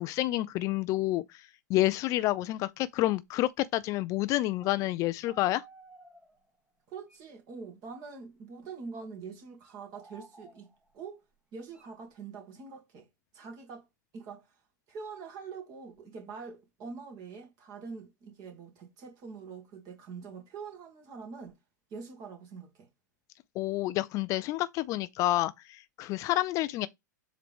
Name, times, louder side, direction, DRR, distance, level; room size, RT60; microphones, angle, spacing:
voice 1, 0.0-5.6 23.6-26.9, left 16 dB, 30° left, 0.4 m, -29 dB
sound 1, 4.6-4.9 5.2-6.6 7.1-7.2 7.8-8.4 9.6-11.0 11.7-11.9, right 3 dB, 10° right, 1.2 m, -55 dB
voice 2, 6.9-11.2 11.5-13.1 13.3-13.9 14.1-14.5 14.9-21.6 21.9-22.9, right 5 dB, 35° right, 2.3 m, -44 dB
7.4 x 3.8 x 3.4 m
figure-of-eight pair, 95°, 10 cm